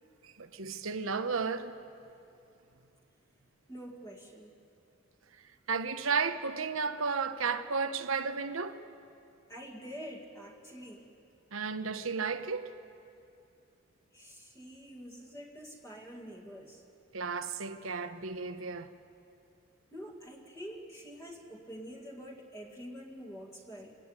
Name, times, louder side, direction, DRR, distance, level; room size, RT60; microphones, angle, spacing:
voice 1, 0.4-1.7 5.7-8.8 11.5-12.7 17.1-18.9, right 5 dB, 85° right, 1.1 m, -33 dB
voice 2, 3.7-4.5 9.5-11.1 14.1-16.8 19.9-24.0, equal, 15° left, 1.9 m, -46 dB
24.0 x 17.0 x 9.8 m
head